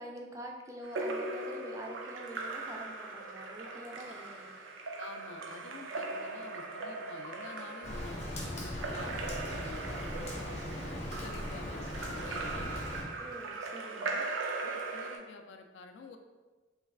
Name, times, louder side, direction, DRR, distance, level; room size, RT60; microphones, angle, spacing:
voice 1, 0.0-4.5 13.2-14.3, right 1 dB, 15° right, 0 dB, 0.3 m, -46 dB
Splash splatter / Drip / Trickle dribble, 0.8-15.2, right 3 dB, 80° right, 0.4 m, -39 dB
voice 2, 4.9-13.0 14.4-16.2, left 4 dB, 70° left, 6 dB, 0.3 m, -50 dB
Rain, 7.8-13.0, left 1 dB, 35° left, 0.7 m, -39 dB
3.2 x 2.3 x 3.3 m, 1.3 s
head